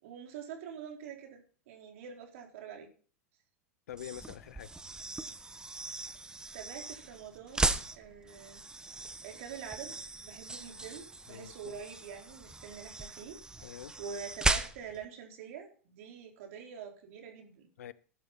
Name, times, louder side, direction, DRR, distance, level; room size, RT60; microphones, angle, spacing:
voice 1, 0.0-2.9 6.5-8.6 9.2-10.0 10.2-17.7, right 7 dB, 65° right, 4.4 m, -46 dB
voice 2, 3.9-4.7 11.3-11.7 13.6-13.9 17.8-17.9, left 11 dB, 85° left, 0.8 m, -45 dB
sound 1, 3.9-15.1, right 2 dB, 10° right, 1.1 m, -37 dB
14.5 x 11.0 x 4.3 m
hypercardioid pair, 110°, 8 cm